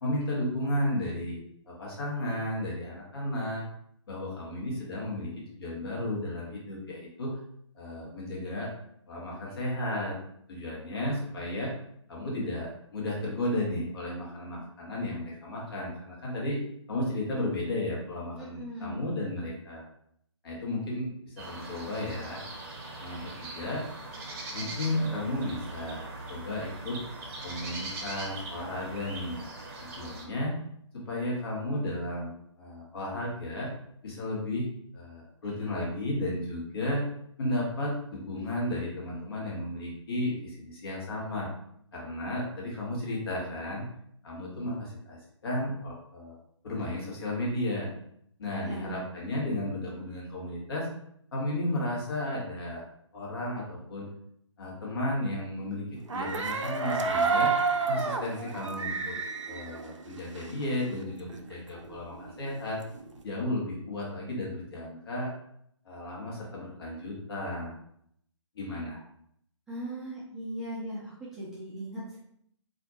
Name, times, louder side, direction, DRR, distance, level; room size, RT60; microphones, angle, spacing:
voice 1, 0.0-1.4 1.7-3.6 4.1-7.3 7.7-8.7 9.1-10.1 10.5-11.7 12.1-16.6 16.9-19.9 20.4-22.4 23.0-23.8 24.5-27.0 27.4-29.5 29.8-30.5 30.9-33.7 34.0-34.7 34.9-37.0 37.4-41.5 41.9-43.8 44.2-46.4 46.6-47.9 48.4-50.9 51.3-52.8 53.1-54.1 54.6-55.8 56.1-57.5 57.9-59.1 59.5-62.8 63.2-65.3 65.8-67.8 68.5-69.0, left 1 dB, 50° left, -4 dB, 1.4 m, -33 dB
voice 2, 18.4-19.0 24.6-25.1 48.5-49.0 69.7-72.2, right 1 dB, 5° right, -10 dB, 0.4 m, -39 dB
sound 1, 21.4-30.2, right 2 dB, 30° right, 0.8 m, -41 dB
sound 2, 56.1-60.7 61.0-61.1 61.3-63.2, right 4 dB, 75° right, 0.5 m, -30 dB
4.2 x 2.6 x 2.8 m, 0.70 s
figure-of-eight pair, 140°, 16 cm